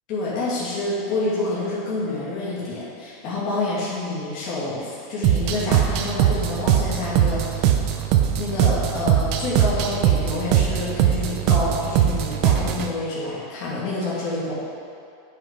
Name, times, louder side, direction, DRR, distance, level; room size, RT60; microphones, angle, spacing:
voice 1, 0.1-7.7 8.4-14.5, left 2 dB, 35° left, -9 dB, 2.1 m, -28 dB
sound 1, 5.2-12.9, right 10 dB, 40° right, 0.5 m, -21 dB
8.3 x 5.7 x 5.1 m, 2.5 s
supercardioid pair, 175°, 0 cm